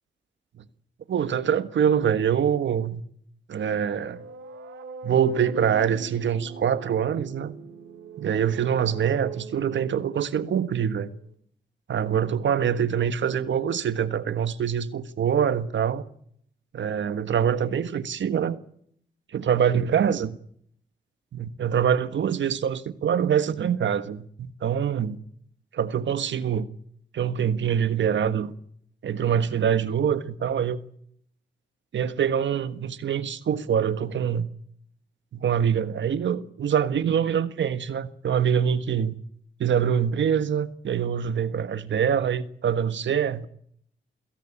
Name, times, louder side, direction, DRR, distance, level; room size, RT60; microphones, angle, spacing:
voice 1, 1.1-3.0 3.5-4.2 5.0-7.5 8.2-11.1 11.9-16.0 16.7-18.6 19.3-20.4 21.3-25.2 25.7-26.7 27.1-28.5 29.0-30.8 31.9-34.5 35.3-39.1 39.6-43.5, right 8 dB, 75° right, 1.5 m, -24 dB
sound 1, 3.6-11.3, right 6 dB, 90° right, 2.7 m, -41 dB
28.5 x 17.0 x 8.8 m
supercardioid pair, 45°, 20 cm